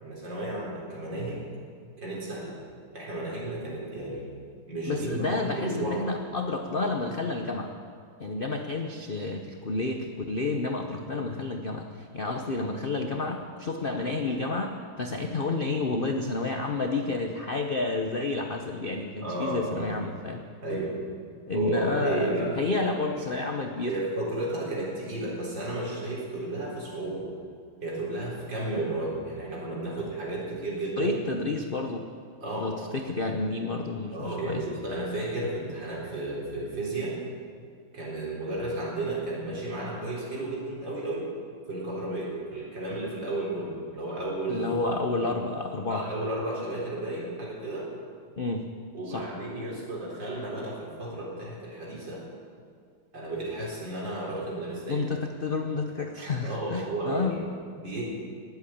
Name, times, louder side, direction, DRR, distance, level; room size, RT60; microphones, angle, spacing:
voice 1, 0.0-1.5 2.0-2.5 2.9-4.3 4.7-6.2 19.2-20.0 20.6-21.0 21.5-22.6 22.8-23.0 23.9-27.3 27.8-31.2 32.4-32.8 34.1-37.2 37.9-41.3 41.7-44.7 45.9-47.9 48.9-52.2 53.1-55.1 56.4-57.4 57.7-58.0, right 2 dB, 55° right, -4 dB, 4.6 m, -33 dB
voice 2, 4.8-7.7 8.2-20.4 21.5-24.0 31.0-32.1 32.6-34.6 44.5-46.1 48.4-48.7 49.1-49.3 54.9-57.3, left 3 dB, 70° left, 4 dB, 0.5 m, -30 dB
19.5 x 8.3 x 8.6 m, 2.2 s
omnidirectional pair, 2.4 m